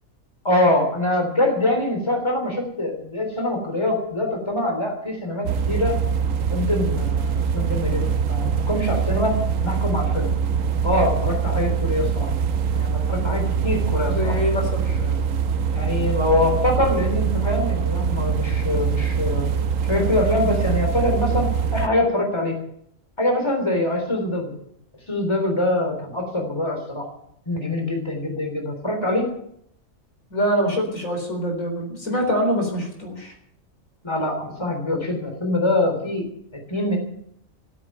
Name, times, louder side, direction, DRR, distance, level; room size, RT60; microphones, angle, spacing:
voice 1, 0.4-6.0 6.5-10.3 10.8-12.3 12.7-14.4 15.0-15.2 15.7-19.5 19.8-22.6 23.2-24.5 25.1-27.1 27.5-29.3 34.0-37.0, left 1 dB, 20° left, 2 dB, 3.7 m, -24 dB
sound 1, 5.4-21.9, right 6 dB, 75° right, 1.2 m, -23 dB
voice 2, 14.1-14.9 30.3-33.3, equal, 80° left, 2 dB, 4.6 m, -24 dB
16.0 x 8.6 x 9.2 m, 0.69 s
omnidirectional pair, 1.4 m